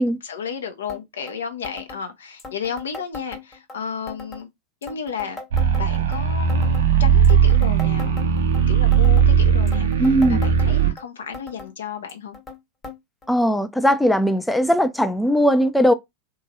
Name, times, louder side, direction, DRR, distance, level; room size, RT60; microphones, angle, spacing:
voice 1, 0.2-4.5 4.8-5.4 5.8-12.4, left 7 dB, 65° left, 0.6 m, -33 dB
sound 1, 0.9-1.0 1.3-1.4 1.6-2.0 2.4-3.8 4.1-4.4 4.8-6.2 6.5-6.9 7.2-8.6 8.9-9.3 9.7-11.0 11.3-11.7 12.1-12.6 12.8-13.0 13.2-13.3 14.1-14.2 15.0-15.1, left 3 dB, 20° left, 0.9 m, -38 dB
sound 2, 5.5-10.9, right 7 dB, 60° right, 0.5 m, -18 dB
voice 2, 10.0-10.4 13.3-15.9, equal, 5° left, 0.3 m, -18 dB
3.0 x 2.3 x 2.6 m
figure-of-eight pair, 90°, 0 cm